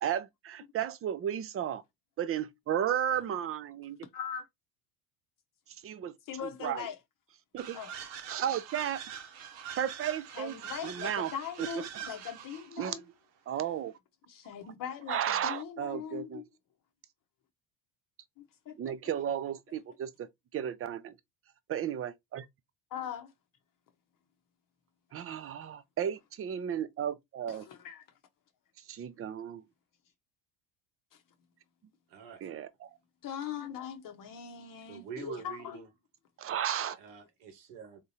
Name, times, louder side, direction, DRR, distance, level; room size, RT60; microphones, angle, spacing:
voice 1, 0.0-1.8 2.2-4.0 5.8-6.1 6.6-6.9 7.5-7.8 8.3-9.0 9.8-11.3 11.6-11.7 12.8-13.0 13.5-13.9 15.1-16.4 18.8-21.1 21.7-22.5 25.1-27.7 28.9-29.6 32.4-32.9 36.4-37.0, right 9 dB, 30° right, 0.5 m, -34 dB
voice 2, 4.1-4.5 6.3-7.0 7.7-7.9 10.4-13.0 14.3-16.4 18.4-18.9 22.9-23.3 27.5-28.0 33.2-35.8, left 8 dB, 45° left, 0.8 m, -40 dB
sound 1, 7.6-12.7, right 8 dB, 65° right, 1.0 m, -43 dB
voice 3, 32.1-32.4 34.9-35.9 37.0-38.0, right 7 dB, 80° right, 1.4 m, -45 dB
3.7 x 2.8 x 2.7 m
supercardioid pair, 95°, 47 cm